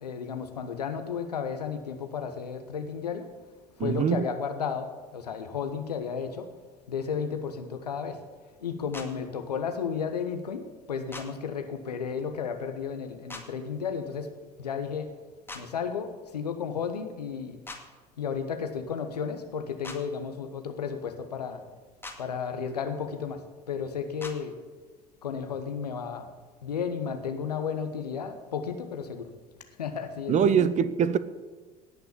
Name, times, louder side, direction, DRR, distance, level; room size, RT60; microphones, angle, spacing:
voice 1, 0.0-3.3 3.8-6.5 6.9-8.2 8.6-14.3 14.6-15.1 15.5-17.6 18.2-21.6 22.2-23.4 23.7-24.5 25.2-26.3 26.6-29.3 29.8-30.7, left 6 dB, 75° left, 1.3 m, -33 dB
voice 2, 3.8-4.2 30.3-31.2, right 8 dB, 35° right, 0.8 m, -23 dB
sound 1, 8.9-9.1 11.1-11.3 13.3-13.4 15.5-15.6 17.6-17.8 19.8-20.0 22.0-22.2 24.2-24.4, left 3 dB, 10° left, 2.1 m, -40 dB
18.0 x 6.0 x 8.4 m
figure-of-eight pair, 60°, 20 cm